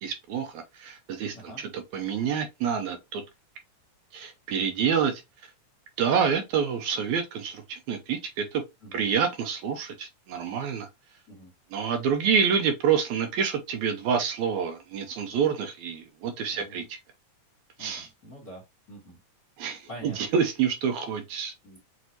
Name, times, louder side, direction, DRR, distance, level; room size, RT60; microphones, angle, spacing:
voice 1, 0.0-3.2 4.1-5.2 6.0-8.6 8.9-10.9 11.7-16.8 17.8-18.1 19.6-21.5, right 7 dB, 80° right, 2.0 m, -27 dB
voice 2, 16.5-16.9 17.8-18.6 18.9-19.2 19.9-20.2 21.6-21.8, right 1 dB, 50° left, 1.1 m, -45 dB
6.2 x 2.6 x 2.8 m
omnidirectional pair, 3.6 m